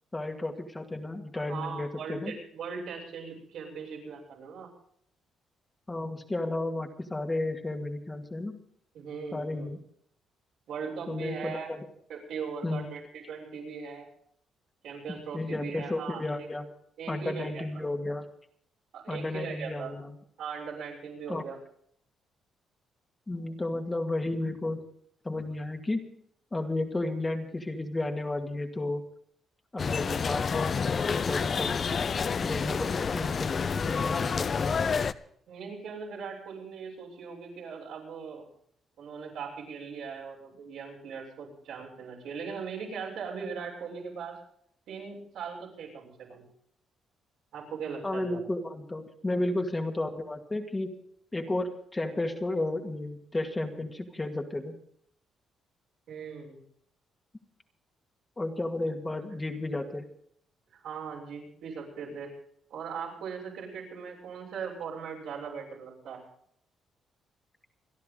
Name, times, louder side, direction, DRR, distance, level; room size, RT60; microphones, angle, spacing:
voice 1, 0.1-2.3 5.9-8.6 9.3-9.8 11.1-11.9 12.6-12.9 15.3-16.7 17.1-18.3 19.1-20.2 21.3-21.4 23.3-24.8 25.2-26.0 26.5-29.0 29.7-31.7 32.4-34.8 48.0-51.0 51.3-54.8 58.4-60.1, left 2 dB, 20° left, 3 dB, 2.2 m, -33 dB
voice 2, 1.3-4.7 8.9-9.7 10.7-11.7 12.1-14.1 14.8-16.5 17.0-17.6 18.9-19.9 20.4-21.6 35.5-38.4 39.0-44.4 44.9-46.4 47.5-48.4 56.1-56.6 60.7-62.3 62.7-66.2, right 6 dB, 80° right, -2 dB, 7.0 m, -39 dB
sound 1, 29.8-35.1, left 6 dB, 45° left, 0.6 m, -29 dB
28.5 x 10.5 x 4.0 m, 0.67 s
cardioid pair, 90°, 0 cm